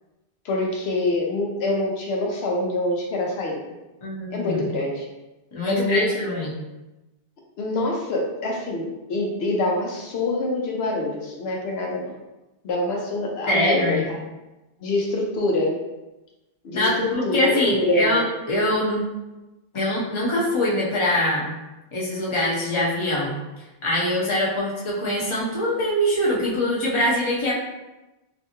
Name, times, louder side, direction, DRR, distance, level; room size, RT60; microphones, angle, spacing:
voice 1, 0.4-3.6 4.3-5.1 5.7-6.4 7.6-12.1 12.6-14.2 14.8-15.8 16.6-18.2, left 2 dB, 80° left, -1 dB, 0.9 m, -25 dB
voice 2, 4.0-4.7 5.5-6.6 13.5-14.1 16.7-19.0 19.7-21.5 21.9-23.3 23.8-27.5, left 1 dB, 30° left, -5 dB, 0.8 m, -23 dB
3.3 x 2.6 x 2.8 m, 1.0 s
omnidirectional pair, 1.0 m